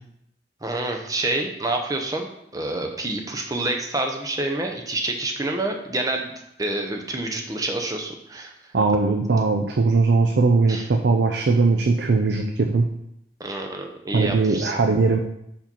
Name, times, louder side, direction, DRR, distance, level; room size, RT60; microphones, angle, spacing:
voice 1, 0.6-2.3 2.5-6.3 6.6-8.5 10.7-10.9 13.4-14.7, right 2 dB, 20° right, 3 dB, 0.7 m, -27 dB
voice 2, 8.7-12.9 14.1-15.2, right 3 dB, 75° right, 4 dB, 0.5 m, -20 dB
5.4 x 4.8 x 4.4 m, 0.80 s
head